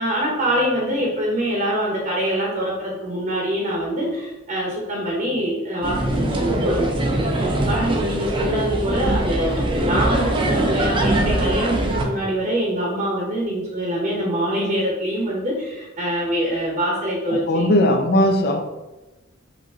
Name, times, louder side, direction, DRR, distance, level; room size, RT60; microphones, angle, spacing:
voice 1, 0.0-6.9 7.2-17.7, equal, 40° right, -3 dB, 1.0 m, -24 dB
sound 1, 5.8-12.0, right 1 dB, 25° right, 0.6 m, -22 dB
voice 2, 17.3-18.6, left 1 dB, 50° left, 4 dB, 0.6 m, -18 dB
5.1 x 2.8 x 3.6 m, 1.1 s
head